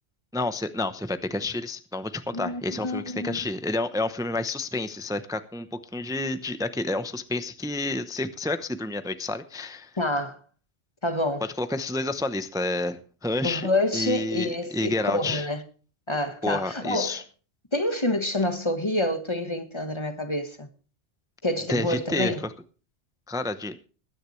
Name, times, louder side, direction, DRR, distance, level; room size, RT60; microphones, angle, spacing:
voice 1, 0.3-5.7 5.9-9.9 11.4-13.7 13.9-15.5 16.4-17.2 21.7-22.5 23.3-23.8, left 2 dB, 5° right, 0.7 m, -29 dB
voice 2, 2.3-3.4 10.0-10.4 11.0-11.4 13.4-15.6 16.1-17.2 17.7-20.7 21.4-22.4, left 1 dB, 25° left, 1.4 m, -27 dB
21.0 x 10.0 x 3.2 m
omnidirectional pair, 1.1 m